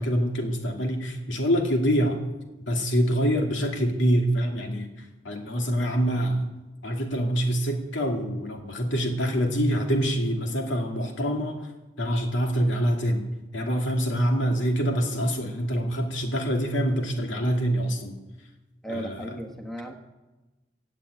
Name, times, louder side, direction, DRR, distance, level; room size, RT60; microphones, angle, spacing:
voice 1, 0.0-2.2 2.7-4.9 5.2-6.4 6.8-11.7 12.0-13.3 13.5-18.2 18.9-19.2, equal, 90° left, 3 dB, 2.4 m, -25 dB
voice 2, 18.8-19.9, right 1 dB, ahead, 4 dB, 1.2 m, -35 dB
17.5 x 7.6 x 8.5 m, 1.1 s
head